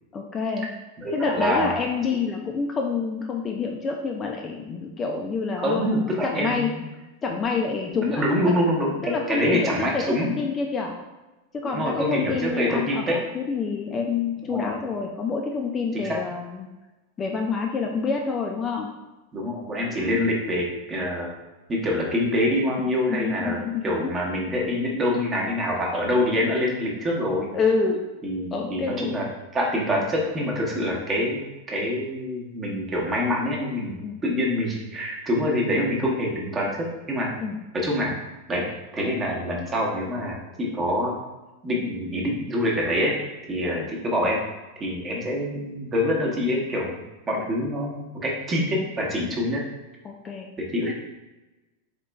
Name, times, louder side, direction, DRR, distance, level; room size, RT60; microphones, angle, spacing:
voice 1, 0.1-0.7 1.1-6.7 7.2-8.6 9.0-10.9 11.5-16.7 17.2-18.9 23.1-24.1 27.5-28.0 28.5-29.2 34.0-34.2 37.4-37.6 43.6-43.9 50.0-50.5 50.8-50.9, left 4 dB, 20° left, 1 dB, 0.4 m, -27 dB
voice 2, 1.0-1.8 5.6-6.8 7.9-10.3 11.7-13.2 14.5-14.7 15.9-16.2 19.3-21.3 21.7-23.6 23.8-27.5 28.2-29.2 29.5-33.9 34.2-37.3 37.8-38.1 38.5-38.7 38.9-41.2 41.6-43.1 43.5-44.4 44.8-46.9 47.3-49.6 50.6-50.9, left 1 dB, 20° right, -1 dB, 0.9 m, -25 dB
4.2 x 2.9 x 3.3 m, 1.1 s
figure-of-eight pair, 90°, 0 cm